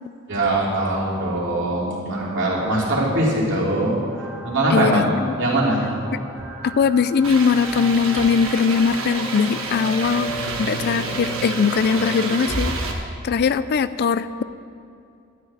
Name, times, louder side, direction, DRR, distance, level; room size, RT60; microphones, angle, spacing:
voice 1, 0.3-3.9 4.4-5.1 5.4-5.9, right 1 dB, 60° right, -4 dB, 3.3 m, -21 dB
sound 1, 4.1-12.2, right 1 dB, 5° right, 1.9 m, -36 dB
voice 2, 4.7-5.3 6.6-10.3 10.6-12.8 13.2-14.4, left 5 dB, 50° left, 15 dB, 0.4 m, -20 dB
sound 2, 7.2-12.9, right 3 dB, 80° right, 1.5 m, -29 dB
12.5 x 6.7 x 8.8 m, 2.5 s
head